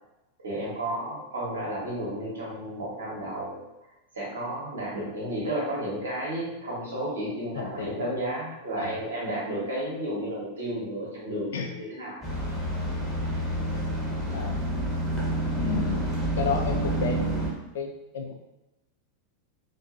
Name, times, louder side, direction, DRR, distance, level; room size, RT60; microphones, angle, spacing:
voice 1, 0.4-3.6 4.1-12.2, right 1 dB, 65° right, -5 dB, 1.0 m, -32 dB
voice 2, 7.5-8.2 8.8-9.0 11.5-11.7 14.3-14.6 15.6-16.1 16.3-18.3, left 5 dB, 60° left, 3 dB, 0.4 m, -32 dB
sound 1, 12.2-17.5, right 1 dB, ahead, 0.8 m, -28 dB
2.6 x 2.2 x 2.5 m, 0.98 s
figure-of-eight pair, 90°, 0 cm